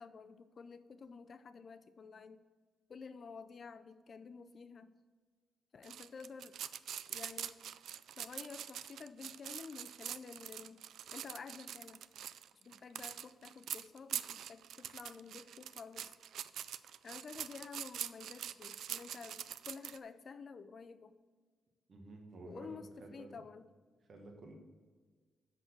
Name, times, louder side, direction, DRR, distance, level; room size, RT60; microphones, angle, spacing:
voice 1, 0.0-2.4 2.9-4.9 5.7-6.6 7.1-7.6 8.2-10.8 11.1-12.0 12.6-16.1 17.0-21.1 22.4-23.7, left 5 dB, 35° left, 11 dB, 0.4 m, -51 dB
sound 1, 5.8-20.0, right 10 dB, 70° right, 0.3 m, -44 dB
voice 2, 21.9-23.4 24.1-24.5, right 2 dB, 35° right, 1 dB, 1.1 m, -52 dB
7.9 x 6.0 x 6.2 m, 1.5 s
wide cardioid pair, 170°, 0 cm